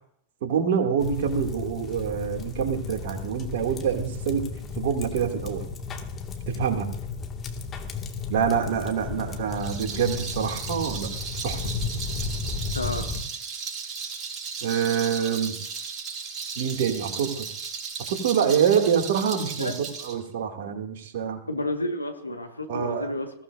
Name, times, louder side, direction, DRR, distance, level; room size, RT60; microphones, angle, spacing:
voice 1, 0.4-4.5 4.8-5.7 6.5-6.9 8.3-11.1 11.4-11.7 14.6-15.6 16.6-17.5 18.1-19.8 20.0-21.4 22.7-23.1, right 7 dB, 55° right, 3 dB, 2.8 m, -26 dB
sound 1, 1.0-13.2, left 4 dB, 25° left, 2.3 m, -34 dB
Rattle, 9.5-20.1, right 5 dB, 25° right, 6.3 m, -36 dB
voice 2, 12.7-13.1 19.6-19.8 21.5-23.3, left 1 dB, 85° left, 5 dB, 1.9 m, -30 dB
21.5 x 16.0 x 2.8 m, 0.67 s
figure-of-eight pair, 90°, 0 cm